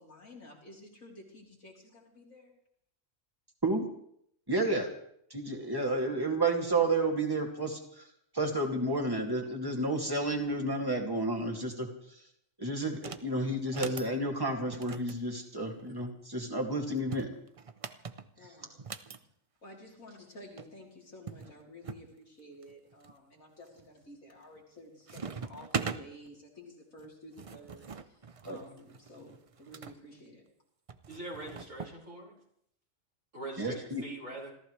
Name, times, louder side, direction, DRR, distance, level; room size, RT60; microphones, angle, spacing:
voice 1, 0.0-2.5 18.4-18.7 19.6-28.2 28.4-30.4, left 1 dB, 80° left, -3 dB, 4.1 m, -52 dB
voice 2, 4.5-4.9 5.3-8.0 8.3-12.2 12.6-17.3 18.4-18.5 28.5-28.6 33.6-34.0, right 2 dB, 15° right, 1 dB, 2.4 m, -31 dB
sound 1, 12.9-13.3 13.6-14.1 14.7-16.1 16.9-19.2 20.3-20.4 20.6-20.7 21.3-22.1 22.6-23.1 23.7-24.0 24.4-24.8 25.1-26.0 27.0-29.9 30.9-32.0, right 5 dB, 40° right, 0.5 m, -41 dB
voice 3, 31.1-32.3 33.3-34.5, right 2 dB, 70° right, -2 dB, 5.8 m, -42 dB
27.0 x 14.5 x 3.3 m, 0.70 s
omnidirectional pair, 1.4 m